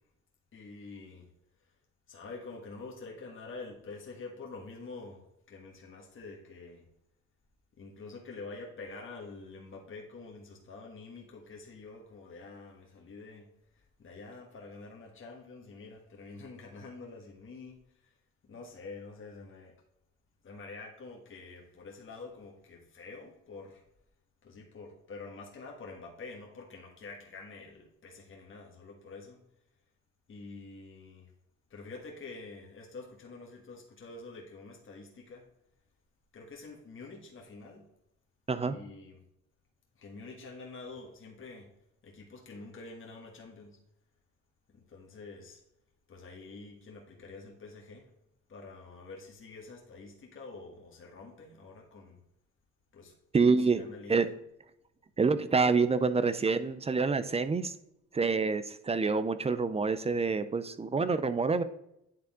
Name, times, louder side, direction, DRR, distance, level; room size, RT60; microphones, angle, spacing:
voice 1, 0.5-1.3 2.1-6.9 7.8-13.5 13.7-18.1 18.5-19.8 20.4-23.8 24.4-29.4 30.3-31.3 31.7-35.5 36.3-37.9 38.6-39.2 39.9-41.7 42.0-43.8 44.7-45.6 46.1-48.1 48.5-52.2 52.9-53.1 53.7-54.2, left 3 dB, 40° left, -1 dB, 1.6 m, -47 dB
voice 2, 53.3-53.8 54.1-54.3 55.2-57.7 58.1-61.6, right 4 dB, 20° right, 13 dB, 0.4 m, -27 dB
9.4 x 3.6 x 3.6 m, 0.81 s
cardioid pair, 90°, 30 cm